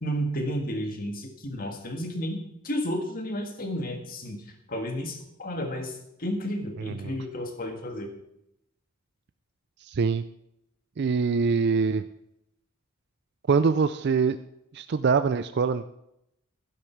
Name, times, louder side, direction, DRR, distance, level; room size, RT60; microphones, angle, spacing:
voice 1, 0.0-4.4 4.7-8.1, equal, 45° left, 5 dB, 1.8 m, -32 dB
voice 2, 6.8-7.2 9.8-10.2 11.0-12.1 13.5-14.4 14.7-16.0, right 5 dB, 55° right, 11 dB, 0.4 m, -24 dB
12.0 x 10.5 x 4.6 m, 0.80 s
head